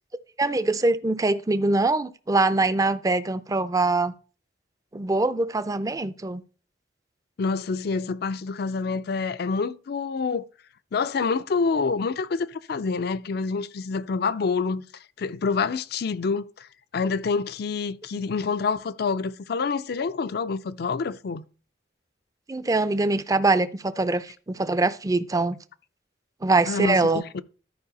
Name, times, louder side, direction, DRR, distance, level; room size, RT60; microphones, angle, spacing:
voice 1, 0.4-4.1 4.9-6.4 18.1-18.3 22.5-25.6 26.4-27.2, right 2 dB, 20° right, 0.5 m, -23 dB
voice 2, 7.4-10.4 10.9-14.8 15.2-16.7 16.9-21.5 26.7-27.4, left 4 dB, 60° left, 0.4 m, -27 dB
12.5 x 4.7 x 4.1 m
head